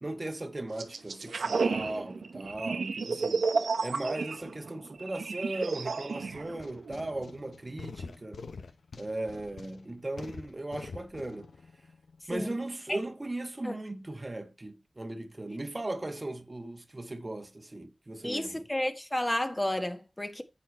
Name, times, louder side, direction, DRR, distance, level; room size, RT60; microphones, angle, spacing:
voice 1, 0.0-3.5 3.8-8.4 9.0-11.5 12.3-18.6, right 2 dB, 35° right, 1.3 m, -37 dB
sound 1, 0.8-7.2, right 4 dB, 85° right, 0.9 m, -32 dB
sound 2, 6.2-12.6, left 4 dB, 85° left, 0.8 m, -46 dB
voice 2, 18.2-20.4, left 1 dB, 20° left, 1.3 m, -31 dB
9.8 x 6.4 x 4.4 m
cardioid pair, 40°, 0 cm